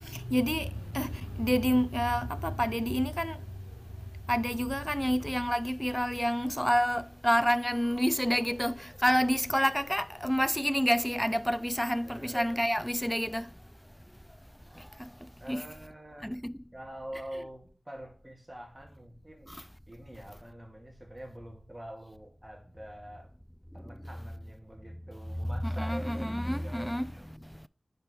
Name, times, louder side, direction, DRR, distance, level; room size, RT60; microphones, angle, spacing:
voice 1, 0.0-3.5 4.3-13.5 14.8-15.6 16.2-16.5 19.5-19.6 25.6-27.1, equal, 5° left, 0.3 m, -29 dB
voice 2, 12.0-12.6 14.7-14.8 15.4-16.4 16.7-19.6 19.9-23.3 23.7-27.3, right 1 dB, 20° right, 2.4 m, -45 dB
5.6 x 4.8 x 6.4 m
wide cardioid pair, 55°, 0 cm